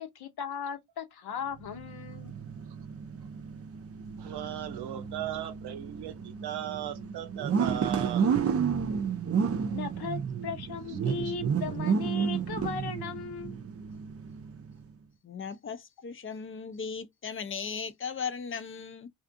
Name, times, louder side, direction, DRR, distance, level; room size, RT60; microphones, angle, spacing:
voice 1, 0.0-2.3 9.7-13.6, left 6 dB, 75° left, 0.8 m, -37 dB
sound 1, 1.6-14.9, right 6 dB, 40° right, 0.5 m, -32 dB
voice 2, 4.2-8.8 11.1-11.3, right 11 dB, 80° right, 0.7 m, -38 dB
voice 3, 15.2-19.1, left 6 dB, 35° left, 0.5 m, -37 dB
2.5 x 2.4 x 2.5 m
cardioid pair, 60°, 39 cm